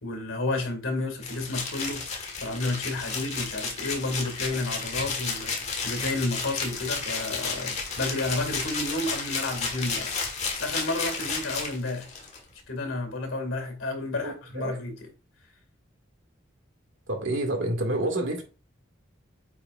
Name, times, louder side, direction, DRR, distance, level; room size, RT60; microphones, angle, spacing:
voice 1, 0.0-2.0 2.4-12.1 12.7-15.1, left 2 dB, 85° left, 2.2 m, -31 dB
sound 1, 1.2-12.4, left 4 dB, 35° left, 1.5 m, -32 dB
voice 2, 14.2-14.7 17.1-18.4, right 1 dB, 85° right, 2.1 m, -28 dB
8.6 x 4.8 x 2.5 m
head